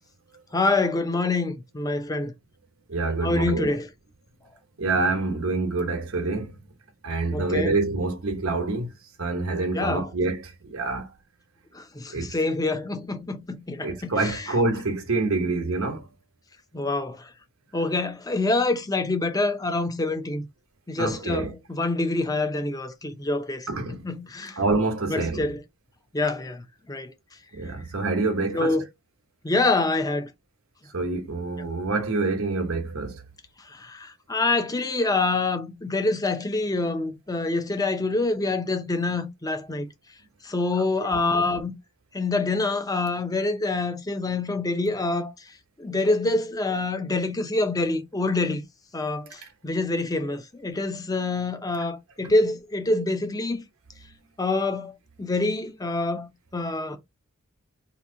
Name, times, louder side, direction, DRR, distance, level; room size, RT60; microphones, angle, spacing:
voice 1, 0.5-2.3 3.2-3.9 7.3-7.7 9.7-10.1 11.7-14.5 16.7-17.2 17.7-20.5 20.9-23.7 24.0-24.6 25.1-25.6 26.1-26.6 26.9-27.1 28.5-28.8 29.4-30.3 33.8-39.9 40.4-41.7 42.1-45.3 45.8-48.6 48.9-49.3 49.6-53.6 54.4-54.9 55.2-56.3 56.5-57.0, left 2 dB, 20° left, 0.6 m, -26 dB
voice 2, 2.9-3.7 4.8-6.5 7.0-8.9 9.2-10.4 10.6-11.1 12.1-12.3 13.8-16.0 21.0-21.5 23.7-24.0 24.6-25.4 27.5-28.8 30.9-33.2, right 3 dB, 85° right, 1.0 m, -26 dB
2.9 x 2.6 x 3.7 m
head